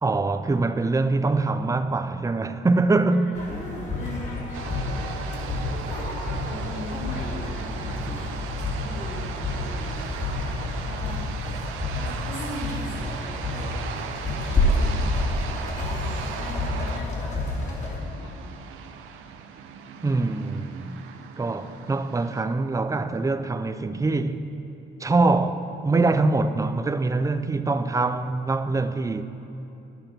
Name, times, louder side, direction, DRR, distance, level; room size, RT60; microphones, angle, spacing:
voice 1, 0.0-3.3 20.0-21.0 21.4-24.4 25.0-29.2, right 3 dB, 15° right, 0.5 m, -24 dB
voice 2, 3.1-5.1 5.9-8.4 8.7-10.4 10.8-11.4 11.9-13.5 14.3-18.4 18.7-18.8 19.1-19.2, left 2 dB, 90° left, 1.8 m, -41 dB
sound 1, 3.3-18.0, left 2 dB, 35° left, 3.1 m, -29 dB
sound 2, 4.5-22.4, right 7 dB, 90° right, 0.7 m, -38 dB
11.0 x 8.9 x 5.9 m
cardioid pair, 90°, 20 cm